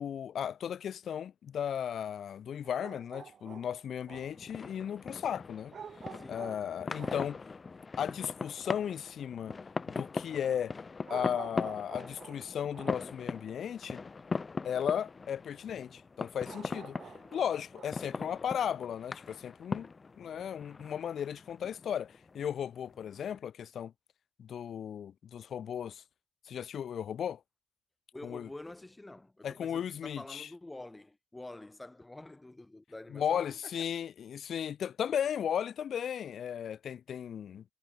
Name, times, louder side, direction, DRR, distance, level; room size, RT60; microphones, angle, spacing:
voice 1, 0.0-5.8 6.3-7.4 8.0-9.5 9.9-10.7 11.1-14.0 14.6-17.0 17.3-19.9 20.1-23.9 24.4-26.0 26.5-27.4 28.2-28.5 29.4-30.5 33.1-37.6, left 9 dB, 65° left, 0.5 m, -35 dB
sound 1, 2.6-4.6 5.7-7.3 11.0-13.1 16.4-18.1, right 7 dB, 60° right, 1.0 m, -49 dB
sound 2, 4.1-23.4, left 4 dB, 35° left, 1.1 m, -41 dB
voice 2, 6.1-6.8 28.1-33.7, left 2 dB, 15° left, 5.2 m, -48 dB
supercardioid pair, 65°, 0 cm